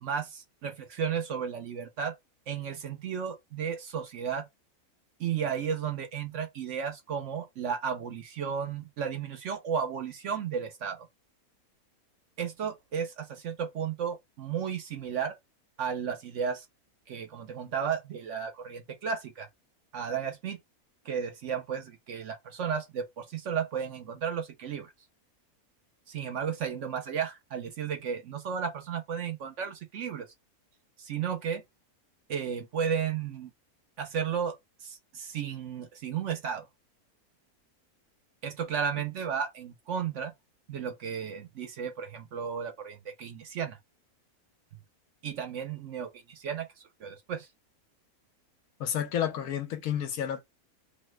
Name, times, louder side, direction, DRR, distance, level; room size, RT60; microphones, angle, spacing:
voice 1, 0.0-2.1 2.5-4.5 5.2-11.1 12.4-15.4 15.8-16.7 17.1-19.5 19.9-20.6 21.0-24.9 26.1-30.3 31.0-31.6 32.3-33.5 34.0-36.7 38.4-40.3 40.7-43.8 45.2-46.7 47.0-47.5, right 7 dB, 60° right, 0.9 m, -33 dB
voice 2, 48.8-50.4, left 9 dB, 75° left, 1.0 m, -30 dB
3.1 x 2.2 x 3.1 m
omnidirectional pair, 1.6 m